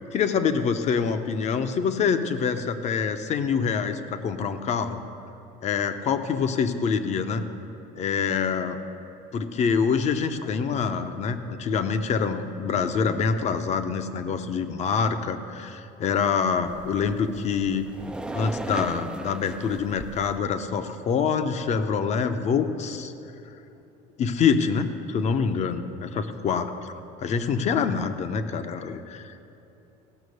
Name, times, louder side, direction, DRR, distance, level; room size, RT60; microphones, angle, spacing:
voice 1, 0.1-5.0 5.6-7.4 8.0-8.8 9.3-17.9 18.3-23.1 24.2-26.7 27.2-29.4, left 6 dB, 40° left, 9 dB, 0.8 m, -25 dB
sound 1, 16.6-20.4, right 2 dB, 5° right, 0.4 m, -37 dB
16.5 x 6.0 x 6.5 m, 2.9 s
cardioid pair, 120°, 17 cm